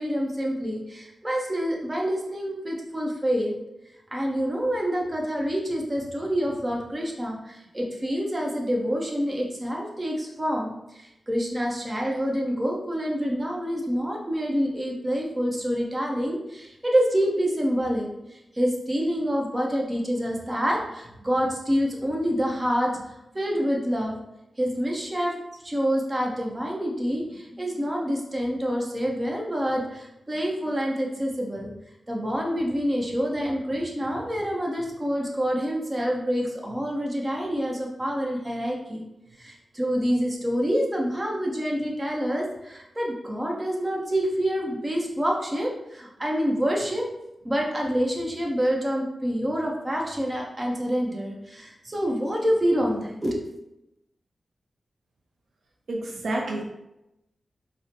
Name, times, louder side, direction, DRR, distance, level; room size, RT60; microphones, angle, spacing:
voice 1, 0.0-3.5 4.1-18.1 18.5-24.1 24.6-25.3 25.6-31.7 32.1-39.0 39.3-47.1 47.4-53.3, equal, 25° right, -2 dB, 0.8 m, -27 dB
voice 2, 55.9-56.6, right 1 dB, 80° right, -1 dB, 0.5 m, -29 dB
4.8 x 2.1 x 2.8 m, 0.89 s
cardioid pair, 65°, 0 cm